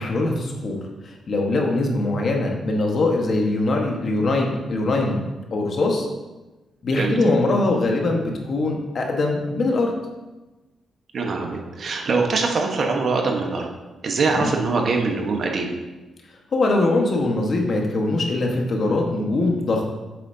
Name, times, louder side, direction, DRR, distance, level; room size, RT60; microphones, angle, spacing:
voice 1, 0.0-6.1 6.8-9.9 14.3-14.5 16.5-19.9, left 2 dB, 55° left, 1 dB, 1.4 m, -22 dB
voice 2, 11.1-13.7 14.0-15.8, right 4 dB, 55° right, 2 dB, 1.2 m, -23 dB
8.1 x 6.9 x 2.8 m, 1.1 s
cardioid pair, 80°, 0 cm